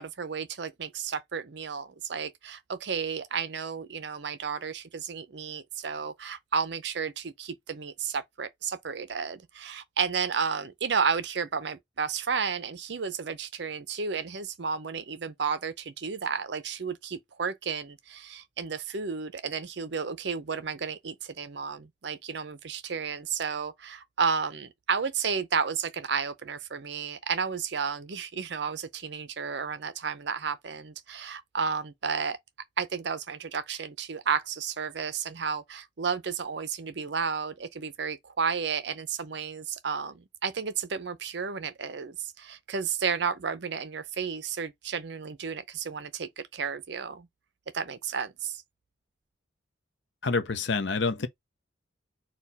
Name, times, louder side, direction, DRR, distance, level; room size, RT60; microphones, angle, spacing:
voice 1, 0.0-32.4 32.8-47.3 47.7-48.6, right 6 dB, 60° right, 0.6 m, -32 dB
voice 2, 50.2-51.3, left 4 dB, 65° left, 0.7 m, -27 dB
4.3 x 2.3 x 3.9 m
head